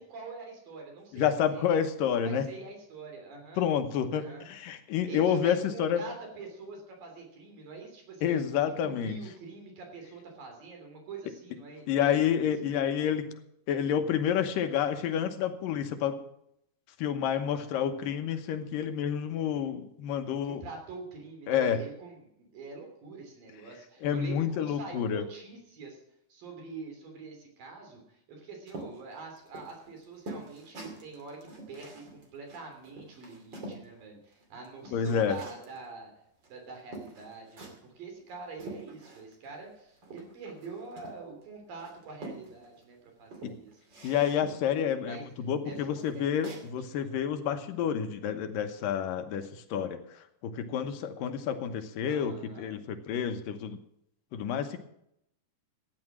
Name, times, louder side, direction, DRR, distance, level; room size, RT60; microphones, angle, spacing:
voice 1, 0.0-1.7 2.2-3.6 4.1-4.5 5.1-8.4 8.8-12.5 20.4-26.0 26.3-36.1 36.5-44.0 44.7-45.2 45.6-47.1 52.1-52.7, right 4 dB, 90° right, 2 dB, 4.9 m, -45 dB
voice 2, 1.1-2.4 3.6-6.0 8.2-9.2 11.9-13.3 13.7-16.2 17.0-20.7 21.5-21.8 24.0-25.2 34.9-35.4 43.4-43.5 44.0-50.0 50.4-53.8 54.3-54.8, left 8 dB, 85° left, 7 dB, 2.7 m, -29 dB
sound 1, 28.7-33.9 34.3-35.8 36.4-36.5 36.9-37.9 38.3-39.4 39.7-41.4 41.8-42.8 43.2-44.7 45.2-45.3 45.7-46.7, right 2 dB, 35° right, 2.9 m, -46 dB
13.5 x 9.8 x 6.2 m, 0.74 s
omnidirectional pair, 3.9 m